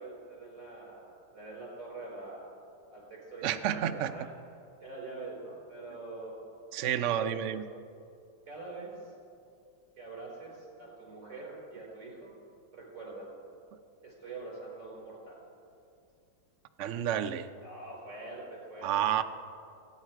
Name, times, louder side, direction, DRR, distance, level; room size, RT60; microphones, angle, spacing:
voice 1, 0.0-2.6 2.9-4.3 4.8-6.4 6.9-7.4 8.5-9.1 10.0-12.4 12.7-13.3 14.0-15.4 17.6-18.9, right 3 dB, 45° right, -3 dB, 4.8 m, -44 dB
voice 2, 3.4-4.3 6.7-7.7 16.8-17.5 18.8-19.2, right 10 dB, 90° right, 9 dB, 0.6 m, -30 dB
27.5 x 9.8 x 4.6 m, 2.5 s
omnidirectional pair, 2.0 m